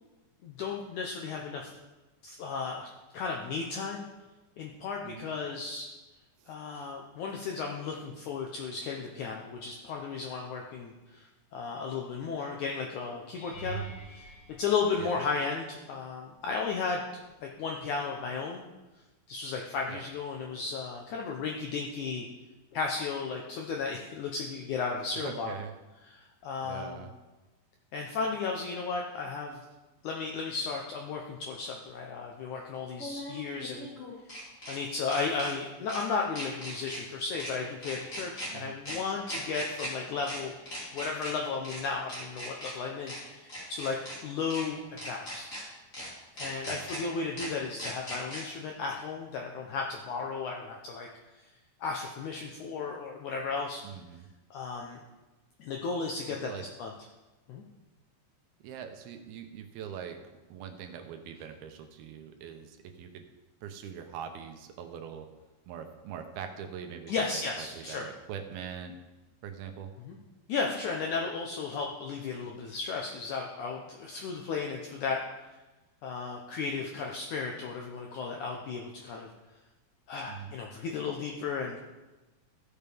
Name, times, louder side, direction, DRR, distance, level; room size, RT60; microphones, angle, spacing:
voice 1, 0.4-1.7 2.2-2.9 3.1-4.1 4.6-5.9 6.5-14.3 14.6-17.0 17.4-18.6 19.3-22.3 22.7-25.5 26.1-27.1 27.9-29.6 30.0-33.9 34.7-40.5 40.9-45.5 46.3-51.1 51.4-51.5 51.8-53.8 54.5-55.0 55.6-56.9 57.5-57.6 67.1-68.0 70.0-70.2 70.5-75.2 76.0-79.3 80.1-81.8, left 5 dB, 75° left, 0 dB, 1.8 m, -34 dB
voice 2, 5.0-5.4 6.4-6.5 15.0-15.1 19.9-20.0 25.2-25.7 26.6-27.1 38.5-38.8 46.5-46.8 53.8-54.3 56.4-56.7 58.6-60.2 60.5-63.3 63.6-65.3 65.7-69.0 69.4-69.9 80.3-80.5, right 8 dB, 80° right, 5 dB, 2.7 m, -42 dB
sound 1, 13.4-15.6 16.3-16.8 17.1-17.3 21.6-21.7, right 7 dB, 55° left, 3.6 m, -44 dB
sound 2, 30.5-30.6 32.9-34.8 35.1-35.5 35.9-36.0 36.4-37.0 37.4-37.5 37.8-38.5 38.9-39.0 39.3-39.9 40.2-40.4 40.7-41.3 41.6-41.8 42.1-42.7 43.1-43.2 43.5-44.2 44.5-44.6 45.0-45.6 45.9-46.1 46.4-47.0 47.4-47.5 47.8-48.4, equal, 20° left, 3.3 m, -39 dB
15.0 x 7.2 x 3.4 m, 1.1 s
omnidirectional pair, 4.4 m